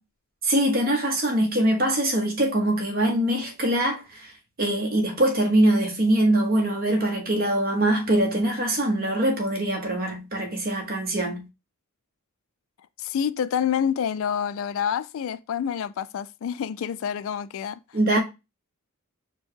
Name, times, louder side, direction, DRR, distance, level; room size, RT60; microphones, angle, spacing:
voice 1, 0.4-4.3 4.6-11.4 17.9-18.2, right 1 dB, 45° right, 1.2 m, -23 dB
voice 2, 13.0-17.8, left 8 dB, 65° left, 0.3 m, -27 dB
4.5 x 2.3 x 4.5 m
head